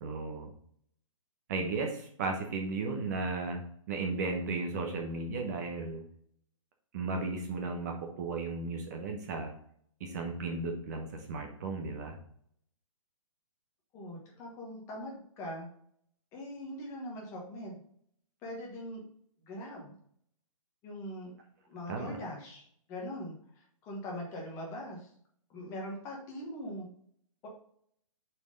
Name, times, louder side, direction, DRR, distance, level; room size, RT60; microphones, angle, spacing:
voice 1, 0.0-0.5 1.5-3.6 3.9-6.0 6.9-9.5 10.0-12.2 21.9-22.2, right 3 dB, 30° right, 2 dB, 1.0 m, -35 dB
voice 2, 13.9-15.7 16.3-17.8 18.4-19.0 19.5-20.0 20.8-21.3 21.7-25.1 25.5-26.9, left 1 dB, 15° left, -1 dB, 1.3 m, -42 dB
6.8 x 4.5 x 5.2 m, 0.64 s
hypercardioid pair, 170°, 18 cm